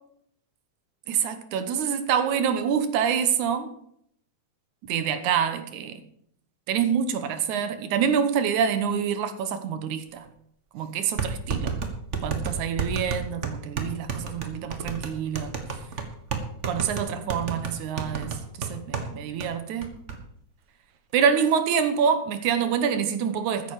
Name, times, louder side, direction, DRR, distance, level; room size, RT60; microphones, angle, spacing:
voice 1, 1.1-3.7 4.8-6.0 6.7-10.2 10.7-11.8 12.2-15.5 16.7-19.9 21.1-23.7, right 7 dB, 80° right, 2.5 m, -26 dB
sound 1, 10.3-10.4 11.2-19.1 19.4-19.5 19.8-20.2, right 5 dB, 40° right, 1.0 m, -31 dB
14.0 x 9.9 x 4.9 m
omnidirectional pair, 3.4 m